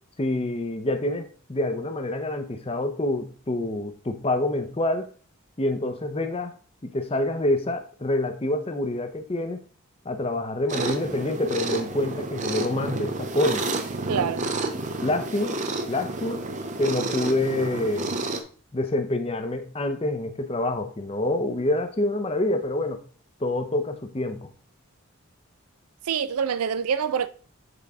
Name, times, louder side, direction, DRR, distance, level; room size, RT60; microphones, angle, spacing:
voice 1, 0.2-5.1 5.6-6.5 6.8-9.6 10.1-13.7 15.0-15.6 15.9-16.4 16.8-18.2 18.7-23.0 23.4-24.5, left 1 dB, 25° left, 0.6 m, -27 dB
sound 1, 10.7-18.4, right 2 dB, 35° right, 0.5 m, -30 dB
voice 2, 14.1-14.5 26.1-27.3, right 7 dB, 90° right, 0.4 m, -25 dB
6.8 x 4.0 x 3.5 m
head